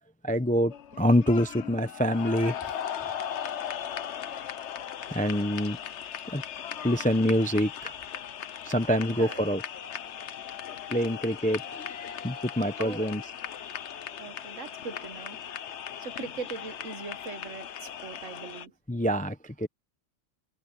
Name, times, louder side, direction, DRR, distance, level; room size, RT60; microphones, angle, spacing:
voice 1, 0.2-2.5 5.1-5.8 6.3-6.4 6.8-7.9 8.6-9.6 10.9-11.6 12.2-13.2 18.9-19.7, equal, 10° left, 0.5 m, -25 dB
sound 1, 0.7-18.7, left 9 dB, 60° left, 1.1 m, -38 dB
voice 2, 9.0-9.5 12.8-13.1 14.2-15.4 16.0-18.7, right 5 dB, 70° right, 1.7 m, -40 dB
omnidirectional pair, 1.4 m